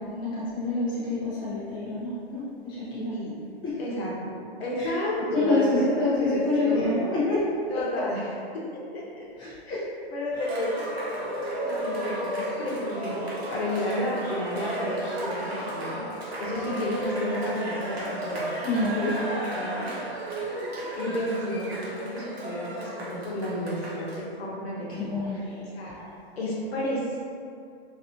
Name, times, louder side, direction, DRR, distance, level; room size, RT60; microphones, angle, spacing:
voice 1, 0.1-3.1 3.6-3.8 4.8-4.9 5.3-7.5 7.7-7.8 9.4-9.8 18.6-19.1 24.9-26.2, left 2 dB, 15° left, -10 dB, 0.6 m, -27 dB
voice 2, 3.8-4.3 4.6-6.9 7.7-8.2 8.5-8.6 8.9-9.3 9.7-9.8 10.1-11.1 11.6-13.2 13.5-16.0 16.4-18.5 19.0-19.9 21.0-25.4 25.7-25.9 26.4-27.2, equal, 75° left, -5 dB, 0.9 m, -31 dB
Cheering, 10.3-24.2, right 1 dB, 75° right, 0.9 m, -33 dB
2.7 x 2.4 x 2.5 m, 2.4 s
hypercardioid pair, 145°, 32 cm